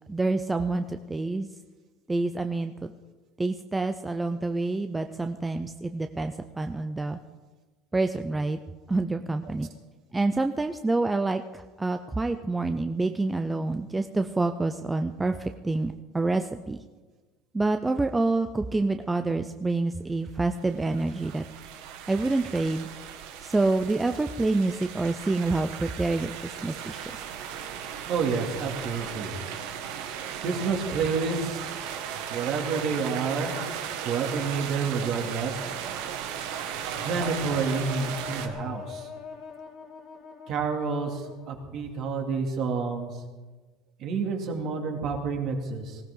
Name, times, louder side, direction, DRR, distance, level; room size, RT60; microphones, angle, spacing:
voice 1, 0.1-1.5 2.1-2.9 3.4-7.2 7.9-8.6 8.9-9.7 10.1-16.8 17.5-21.5 22.1-22.9 23.4-27.2, right 3 dB, 10° right, 7 dB, 0.5 m, -27 dB
sound 1, 20.5-38.5, right 8 dB, 75° right, 1.8 m, -36 dB
voice 2, 28.1-29.3 30.4-31.6 32.3-33.5 34.0-35.7 36.9-39.1 40.5-43.1 44.0-46.0, right 5 dB, 45° right, 2 dB, 2.8 m, -29 dB
sound 2, 36.9-41.8, left 6 dB, 40° left, 2.1 m, -43 dB
19.5 x 17.0 x 3.9 m, 1.3 s
cardioid pair, 150°, 0 cm